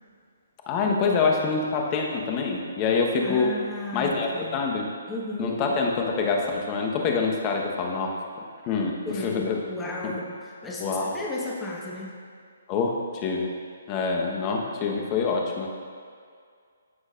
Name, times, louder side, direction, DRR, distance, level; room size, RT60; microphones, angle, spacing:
voice 1, 0.7-3.5 3.9-4.9 5.4-9.0 9.2-9.6 10.0-10.1 10.8-11.1 12.7-13.5 13.9-15.7, left 4 dB, 30° left, 0 dB, 1.2 m, -26 dB
voice 2, 3.2-4.5 5.1-5.6 9.0-12.2, left 2 dB, 10° left, -4 dB, 1.5 m, -34 dB
14.5 x 6.3 x 2.5 m, 2.2 s
figure-of-eight pair, 135°, 0 cm